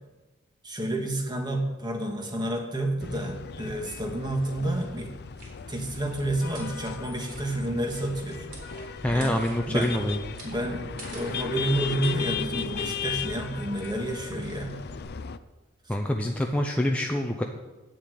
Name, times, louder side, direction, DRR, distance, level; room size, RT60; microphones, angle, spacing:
voice 1, 0.6-5.1 5.7-8.5 9.1-9.9 10.4-10.9 11.1-14.7, right 1 dB, 20° right, 2 dB, 1.7 m, -30 dB
sound 1, 3.0-15.4, left 6 dB, 55° left, 0.5 m, -36 dB
sound 2, 5.2-15.0, right 2 dB, 55° right, 3.9 m, -48 dB
voice 2, 9.0-10.2 15.9-17.4, left 1 dB, 5° left, 1 dB, 0.7 m, -26 dB
9.4 x 7.3 x 8.4 m, 1.1 s
head